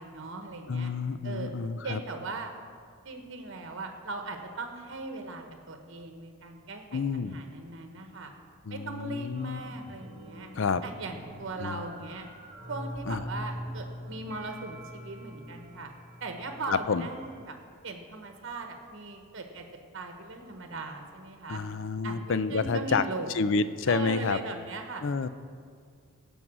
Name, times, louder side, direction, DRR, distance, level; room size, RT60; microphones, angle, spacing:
voice 1, 0.0-0.9 1.2-1.5 1.8-2.5 3.0-8.3 8.7-10.5 10.8-12.3 12.7-15.9 16.2-17.6 17.8-19.6 19.9-21.6 22.0-23.6 23.9-25.0, right 3 dB, 55° right, 5 dB, 1.0 m, -39 dB
voice 2, 0.7-2.0 6.9-7.4 8.7-9.6 10.5-10.8 11.6-11.8 13.1-13.2 16.7-17.1 21.5-23.0 23.3-24.4 25.0-25.3, left 4 dB, 55° left, 13 dB, 0.4 m, -29 dB
sound 1, 9.3-17.4, equal, 30° right, 1.7 m, -43 dB
16.0 x 5.5 x 6.1 m, 2.1 s
head